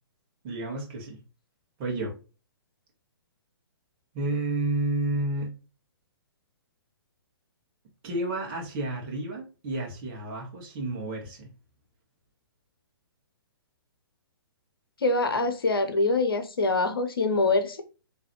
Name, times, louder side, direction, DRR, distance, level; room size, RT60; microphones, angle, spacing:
voice 1, 0.4-1.2 1.8-2.1 4.1-5.6 8.0-11.5, right 2 dB, 30° right, 1.5 m, -31 dB
voice 2, 15.0-17.8, left 3 dB, 70° left, 0.9 m, -24 dB
3.9 x 3.1 x 3.0 m
figure-of-eight pair, 120°, 13 cm